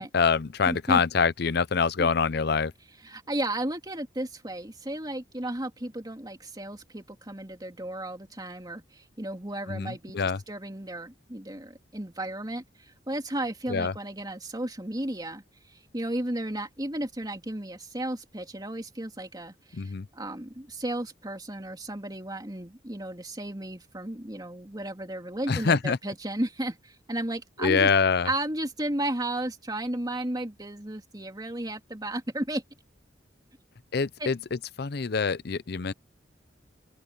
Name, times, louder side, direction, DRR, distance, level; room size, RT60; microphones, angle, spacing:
voice 1, 0.1-2.7 9.7-10.4 13.7-13.9 19.7-20.1 25.5-26.0 27.6-28.3 33.9-35.9, left 5 dB, 60° left, 0.6 m, -25 dB
voice 2, 0.7-1.0 2.0-2.1 3.0-15.4 15.7-27.9 28.2-32.6 34.2-34.3, right 1 dB, 20° right, 2.9 m, -34 dB
open air
head